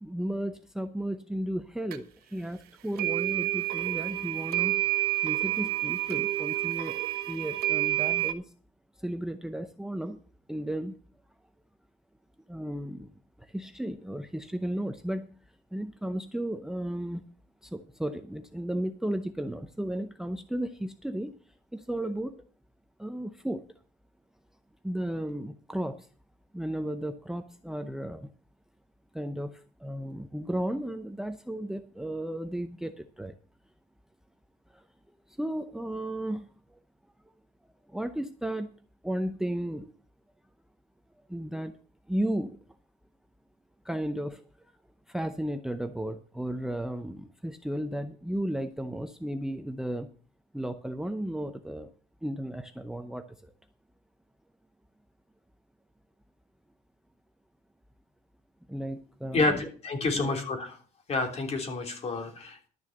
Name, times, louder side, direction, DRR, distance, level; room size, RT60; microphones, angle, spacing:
voice 1, 0.0-4.8 5.2-7.0 7.3-8.5 9.0-10.2 10.5-11.0 12.5-13.1 13.4-15.4 15.7-17.2 17.6-21.4 21.7-22.3 23.0-23.7 24.8-26.1 26.5-28.3 29.1-33.3 34.7-34.8 35.3-36.8 37.9-38.7 39.0-39.9 41.3-41.8 42.1-42.6 43.8-44.4 45.1-50.1 50.5-51.9 52.2-53.5 58.7-59.7 60.1-60.4, right 1 dB, 5° right, 10 dB, 0.6 m, -34 dB
sound 1, 1.9-2.0 3.0-8.3, right 17 dB, 80° right, 1.2 m, -29 dB
voice 2, 59.3-60.8 61.1-62.7, left 3 dB, 40° left, 3 dB, 3.2 m, -29 dB
12.0 x 6.8 x 6.5 m, 0.41 s
cardioid pair, 125°, 16 cm